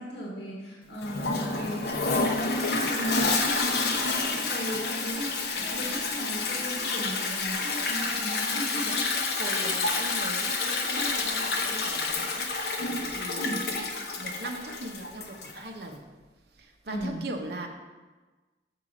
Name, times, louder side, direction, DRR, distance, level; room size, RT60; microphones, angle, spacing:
voice 1, 0.0-9.0 10.9-11.2 13.4-13.7 16.9-17.2, equal, 80° left, -3 dB, 1.3 m, -37 dB
Toilet flush, 1.0-15.6, left 3 dB, 65° left, 0.7 m, -29 dB
voice 2, 5.6-5.9 8.8-9.0 9.4-13.9 14.1-16.0 16.5-17.7, right 2 dB, 65° right, 3 dB, 0.8 m, -40 dB
6.8 x 4.8 x 4.9 m, 1.3 s
head